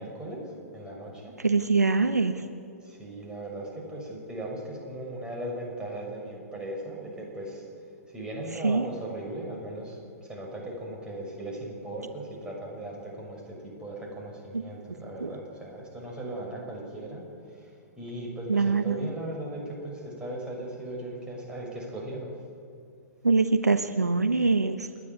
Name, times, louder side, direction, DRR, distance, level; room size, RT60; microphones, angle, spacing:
voice 1, 0.0-1.4 2.8-7.7 8.1-17.7 18.0-22.3, right 1 dB, 10° right, -2 dB, 6.6 m, -38 dB
voice 2, 1.4-2.3 8.6-8.8 15.2-15.3 18.5-19.0 23.2-24.8, right 4 dB, 85° right, 9 dB, 1.1 m, -23 dB
29.0 x 10.5 x 9.7 m, 2.4 s
figure-of-eight pair, 115°, 9 cm